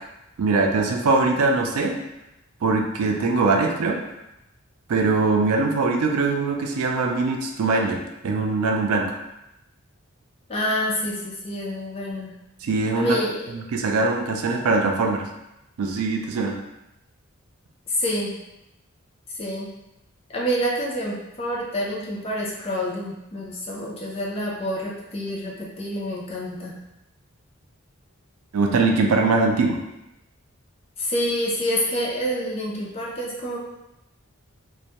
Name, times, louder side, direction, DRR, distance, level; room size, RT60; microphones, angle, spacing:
voice 1, 0.4-2.0 2.6-4.0 4.9-9.2 12.6-13.2 13.5-15.3 15.8-16.6 28.5-29.8, right 3 dB, 80° right, 2 dB, 0.4 m, -22 dB
voice 2, 10.5-12.3 12.9-13.5 17.9-18.4 19.3-19.7 20.3-26.8 31.0-33.6, equal, 25° left, -3 dB, 0.4 m, -27 dB
2.2 x 2.0 x 2.8 m, 0.89 s
head